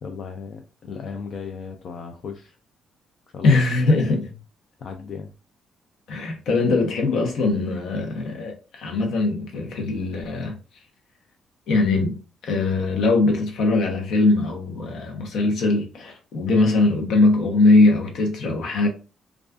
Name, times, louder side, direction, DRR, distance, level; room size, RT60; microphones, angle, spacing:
voice 1, 0.0-2.6 3.3-4.3 4.8-5.3, left 5 dB, 55° left, 0.3 m, -36 dB
voice 2, 3.4-4.3 6.1-10.6 11.7-18.9, left 3 dB, 75° left, 0.7 m, -21 dB
2.3 x 2.3 x 2.3 m
cardioid pair, 90°, 0 cm